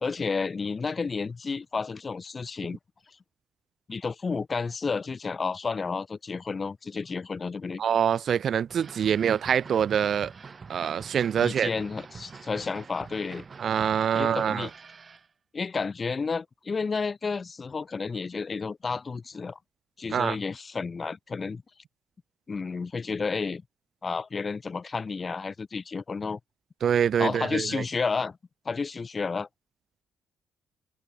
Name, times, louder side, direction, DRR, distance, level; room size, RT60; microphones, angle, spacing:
voice 1, 0.0-2.8 3.9-7.8 11.4-13.4 14.1-14.7 15.5-19.6 20.0-21.6 22.5-23.6 24.0-26.4 27.2-28.4 28.7-29.5, left 4 dB, 35° left, 0.7 m, -31 dB
voice 2, 7.8-10.3 10.7-11.7 13.6-14.7 20.1-20.4 26.8-27.8, right 8 dB, 60° right, 0.6 m, -25 dB
sound 1, 8.7-15.3, right 5 dB, 35° right, 2.8 m, -46 dB
cardioid pair, 90°, 0 cm